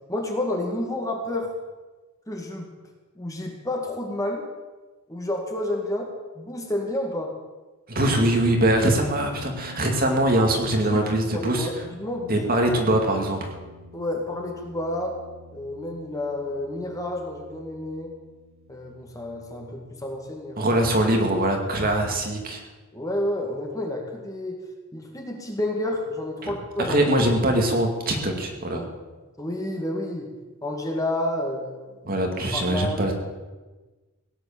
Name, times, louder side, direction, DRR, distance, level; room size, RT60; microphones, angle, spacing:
voice 1, 0.1-1.5 2.3-2.7 3.2-4.4 5.1-6.1 6.4-7.3 10.8-12.5 13.9-15.2 15.5-18.1 18.7-20.7 22.9-24.6 24.9-27.1 29.4-30.3 30.6-32.1 32.5-33.1, left 1 dB, 15° left, 1 dB, 2.2 m, -30 dB
voice 2, 7.9-11.7 12.3-13.4 20.6-22.6 26.4-28.8 32.1-33.1, right 1 dB, 40° right, 3 dB, 2.3 m, -22 dB
sound 1, 8.1-21.2, left 1 dB, 65° right, 2.2 m, -46 dB
17.5 x 9.7 x 7.4 m, 1.2 s
head